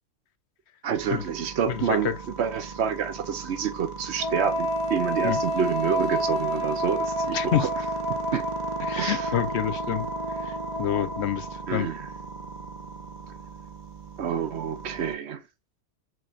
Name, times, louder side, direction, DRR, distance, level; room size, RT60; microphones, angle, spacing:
voice 1, 0.8-7.7 8.3-8.4 9.0-9.4 11.7-12.1 14.2-15.4, right 7 dB, 65° right, 1.0 m, -28 dB
sound 1, 0.9-15.1, right 3 dB, 40° right, 0.9 m, -37 dB
voice 2, 1.7-2.1 5.2-5.4 7.3-7.7 8.9-10.1 10.4-11.9, left 10 dB, 65° left, 0.9 m, -28 dB
Wind instrument woodwind instrument, 4.2-11.5, equal, 35° left, 0.8 m, -30 dB
6.1 x 3.2 x 2.4 m
omnidirectional pair, 1.3 m